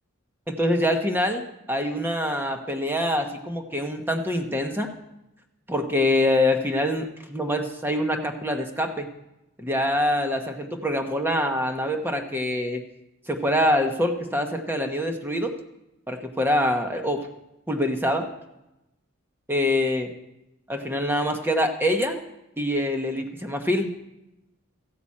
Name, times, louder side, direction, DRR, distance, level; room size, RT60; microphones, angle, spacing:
voice 1, 0.5-4.9 5.7-9.1 9.6-12.8 13.3-15.5 16.1-17.3 17.7-18.3 19.5-20.1 20.7-22.2 22.6-23.9, left 1 dB, 10° right, 4 dB, 1.0 m, -25 dB
14.0 x 5.9 x 8.5 m, 0.92 s
head